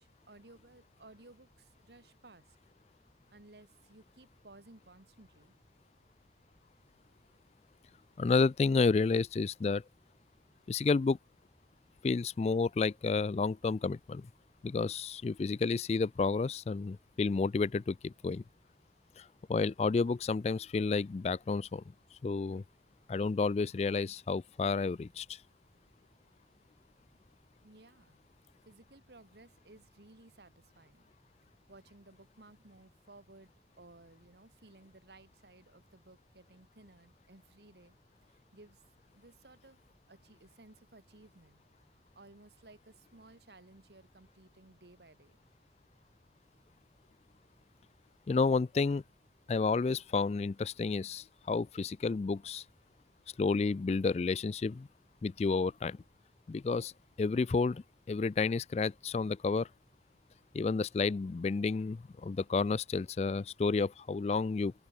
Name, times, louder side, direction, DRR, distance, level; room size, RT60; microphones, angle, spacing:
voice 1, 0.0-2.6 3.3-5.6 27.6-28.2 28.7-31.1 31.7-38.0 38.3-38.8 39.1-39.8 40.1-41.6 42.2-45.4, right 2 dB, 70° right, 1.7 m, -58 dB
voice 2, 8.2-9.8 10.7-11.2 12.0-14.3 14.6-18.4 19.2-21.8 22.2-22.6 23.1-25.4 48.3-49.0 49.5-52.6 53.4-54.9 55.2-56.0 56.5-56.9 57.2-59.7 60.5-64.7, left 4 dB, 35° left, 0.3 m, -31 dB
open air
head